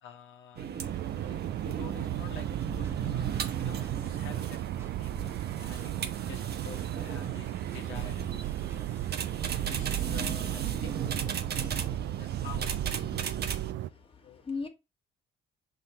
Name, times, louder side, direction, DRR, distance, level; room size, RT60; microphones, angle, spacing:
voice 1, 0.0-8.8 9.7-11.6 11.9-12.7 14.2-14.4, left 7 dB, 80° left, 1.4 m, -49 dB
sound 1, 0.6-13.7, right 8 dB, 55° right, 1.0 m, -35 dB
sound 2, 0.8-13.9, right 14 dB, 75° right, 0.4 m, -36 dB
sound 3, 2.3-11.3, right 2 dB, 10° right, 1.0 m, -52 dB
voice 2, 13.8-14.7, left 4 dB, 25° left, 1.6 m, -38 dB
6.3 x 3.8 x 4.2 m
cardioid pair, 90°, 20 cm